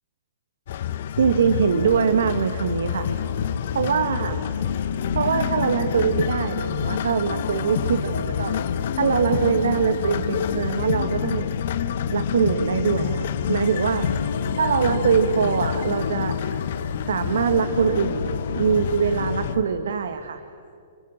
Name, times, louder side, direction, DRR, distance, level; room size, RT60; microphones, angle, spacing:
sound 1, 0.7-19.6, left 10 dB, 60° left, 1.2 m, -29 dB
voice 1, 1.2-3.1 3.7-4.5 5.1-8.6 9.0-11.5 12.1-14.1 14.6-16.4 17.1-20.4, right 7 dB, 70° right, 9 dB, 1.3 m, -23 dB
sound 2, 1.7-19.6, left 5 dB, 85° left, 1.7 m, -31 dB
30.0 x 25.5 x 7.6 m, 2.4 s
hypercardioid pair, 120°, 0 cm